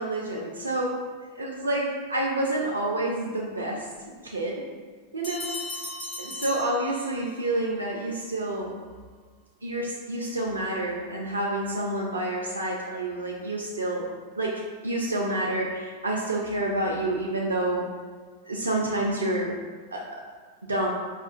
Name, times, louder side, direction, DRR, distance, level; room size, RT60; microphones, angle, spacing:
voice 1, 0.0-1.0 1.4-3.9 4.2-4.6 5.1-5.5 6.2-8.8 9.6-14.1 14.4-17.9 18.5-19.6 19.9-20.0 20.7-20.9, right 1 dB, 75° right, -2 dB, 0.3 m, -28 dB
Bell, 5.2-7.5, left 2 dB, 45° left, 1.2 m, -37 dB
4.9 x 2.3 x 2.4 m, 1.5 s
figure-of-eight pair, 90°, 0 cm